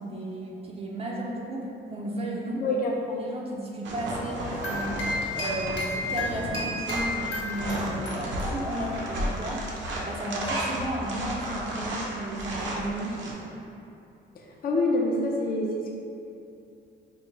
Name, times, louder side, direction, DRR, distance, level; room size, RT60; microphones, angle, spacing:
voice 1, 0.0-2.6 3.1-5.0 5.4-13.2, right 1 dB, 30° right, -3 dB, 0.5 m, -34 dB
voice 2, 2.6-2.9 14.6-15.9, left 2 dB, 45° left, -1 dB, 0.6 m, -26 dB
sound 1, 3.8-13.3, right 1 dB, 65° right, 0.7 m, -33 dB
sound 2, 4.2-9.1, left 2 dB, 65° left, 1.0 m, -33 dB
4.5 x 2.1 x 3.2 m, 2.7 s
cardioid pair, 90°, 20 cm